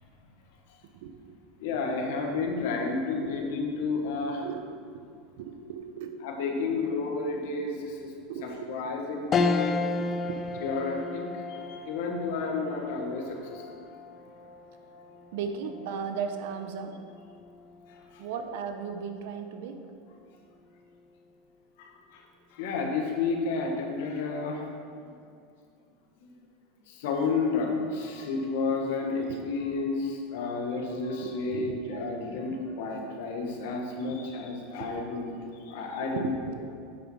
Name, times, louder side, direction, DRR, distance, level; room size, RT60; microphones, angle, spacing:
voice 1, 1.0-1.4 3.2-3.3 4.4-5.1 5.4-6.1 8.3-8.8 10.3-10.6 15.3-16.9 18.2-19.8 29.3-29.4 31.2-32.0 34.8-35.2 36.1-36.7, right 6 dB, 70° right, 7 dB, 0.7 m, -36 dB
voice 2, 1.6-4.5 6.2-8.1 8.4-9.7 10.6-13.6 17.9-18.2 21.8-22.2 22.5-24.7 26.2-26.3 26.9-35.3 35.7-36.3, left 4 dB, 75° left, 1 dB, 1.4 m, -31 dB
sound 1, 9.3-18.9 19.4-19.5 20.8-21.3, left 4 dB, 25° left, 0.4 m, -34 dB
9.0 x 4.5 x 5.5 m, 2.4 s
supercardioid pair, 145°, 0 cm